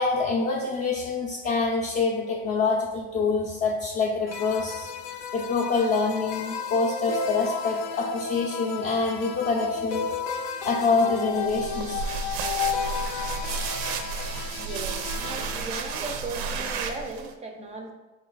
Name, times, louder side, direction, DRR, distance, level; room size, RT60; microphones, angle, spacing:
voice 1, 0.0-4.9 5.3-10.1 10.6-12.1, left 4 dB, 35° left, -1 dB, 0.4 m, -26 dB
sound 1, 4.3-15.6, left 5 dB, 80° left, 0.5 m, -33 dB
sound 2, 11.4-17.3, right 5 dB, 85° right, 0.6 m, -32 dB
voice 2, 14.3-17.9, right 3 dB, 20° right, 2 dB, 0.4 m, -37 dB
4.4 x 2.4 x 3.8 m, 1.1 s
supercardioid pair, 125°, 31 cm